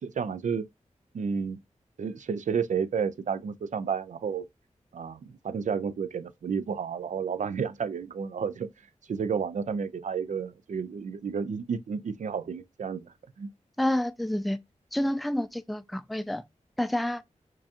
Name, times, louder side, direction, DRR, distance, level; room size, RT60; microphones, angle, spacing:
voice 1, 0.0-0.7 1.1-1.6 2.0-4.4 4.9-8.7 9.1-13.5, right 6 dB, 70° right, 0.4 m, -31 dB
voice 2, 13.8-14.6 14.9-16.4 16.8-17.2, left 1 dB, ahead, 0.3 m, -28 dB
4.6 x 2.3 x 2.8 m
wide cardioid pair, 65°, 13 cm